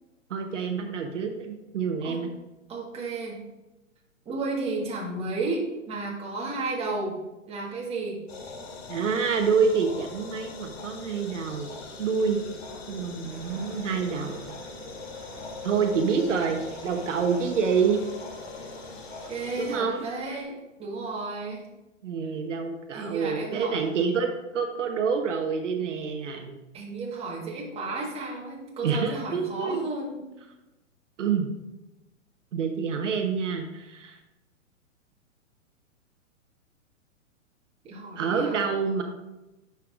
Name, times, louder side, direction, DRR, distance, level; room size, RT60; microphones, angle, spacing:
voice 1, 0.3-2.3 8.9-11.7 12.0-12.4 12.9-14.5 15.6-18.0 19.6-20.0 22.0-26.6 28.8-29.8 31.2-31.5 32.5-34.2 38.2-39.0, right 5 dB, 70° right, 4 dB, 1.0 m, -27 dB
voice 2, 2.7-3.4 4.2-7.2 7.5-8.2 19.3-21.7 22.9-23.8 26.7-30.2 37.8-38.6, right 3 dB, 15° right, -3 dB, 1.5 m, -33 dB
sound 1, 8.3-19.7, left 3 dB, 50° left, 1.5 m, -41 dB
sound 2, 13.3-20.4, right 3 dB, 35° right, 2.5 m, -49 dB
9.6 x 5.6 x 2.5 m, 1.0 s
hypercardioid pair, 120°, 39 cm